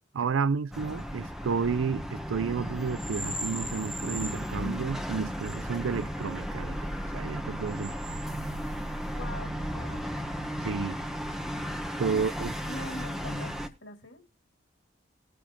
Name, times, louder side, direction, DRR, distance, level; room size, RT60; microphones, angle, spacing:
voice 1, 0.1-6.8 7.1-8.2 10.6-11.0 12.0-12.5, right 5 dB, 90° right, 0.5 m, -31 dB
sound 1, 0.7-13.7, equal, ahead, 0.9 m, -34 dB
voice 2, 9.1-10.2 12.1-12.3 12.6-14.3, left 1 dB, 80° left, 2.2 m, -44 dB
20.5 x 6.8 x 2.9 m
head